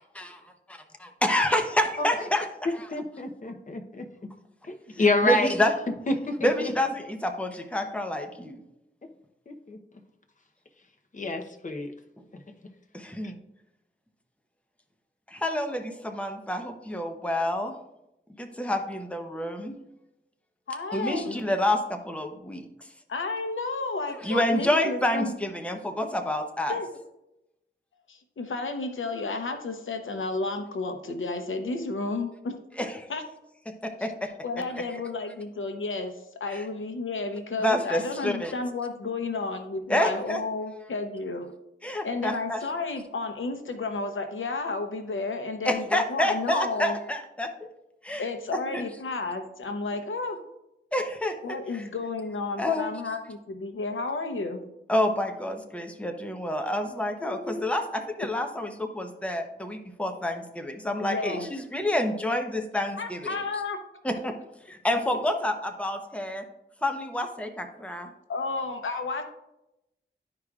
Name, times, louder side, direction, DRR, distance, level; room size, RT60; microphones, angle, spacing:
voice 1, 1.2-2.5 5.0-5.7 6.4-8.6 12.9-13.4 15.3-17.7 18.4-19.7 20.9-22.6 24.2-26.8 32.8-33.0 33.8-34.3 36.5-36.6 37.6-38.5 39.9-40.4 41.8-42.6 45.6-47.5 48.0-48.3 48.7-48.8 50.9-51.3 51.7-51.8 52.6-52.9 54.9-63.2 64.0-64.3 64.7-66.4 66.8-68.1, left 1 dB, 5° left, 4 dB, 0.8 m, -28 dB
voice 2, 2.9-4.0 4.7-5.5 6.1-6.7 9.5-9.8 11.1-11.9, left 2 dB, 40° left, 5 dB, 0.8 m, -27 dB
voice 3, 20.7-21.4 23.1-25.3 26.7-27.0 28.1-32.6 33.1-33.2 34.4-41.5 42.0-47.0 48.2-50.4 51.4-54.6 57.2-57.7 61.0-61.5 63.0-63.8 68.3-69.2, left 3 dB, 80° left, 6 dB, 0.8 m, -32 dB
12.0 x 4.9 x 2.4 m, 0.88 s
wide cardioid pair, 85°, 20 cm